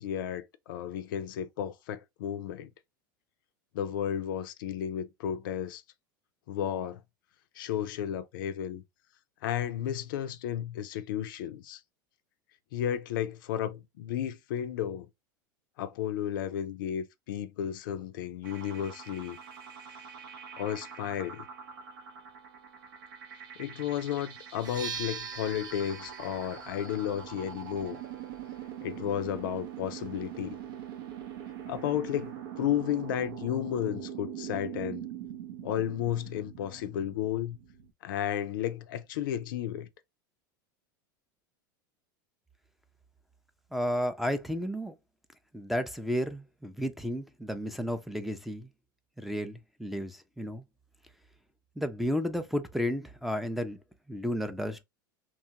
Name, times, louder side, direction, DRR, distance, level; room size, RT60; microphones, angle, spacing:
voice 1, 0.0-2.7 3.7-5.8 6.5-7.0 7.6-8.8 9.4-11.8 12.7-15.1 15.8-19.4 20.6-21.4 23.6-28.0 28.8-30.6 31.7-35.1 35.6-37.6 38.0-39.9, left 10 dB, 70° left, 0.4 m, -33 dB
sound 1, 18.4-37.9, right 9 dB, 75° right, 0.6 m, -43 dB
sound 2, 24.6-32.3, right 6 dB, 35° right, 0.7 m, -45 dB
voice 2, 43.7-45.0 45.5-48.7 49.2-50.6 51.8-53.8 54.1-54.8, equal, ahead, 0.4 m, -32 dB
2.9 x 2.2 x 2.8 m
hypercardioid pair, 95°, 11 cm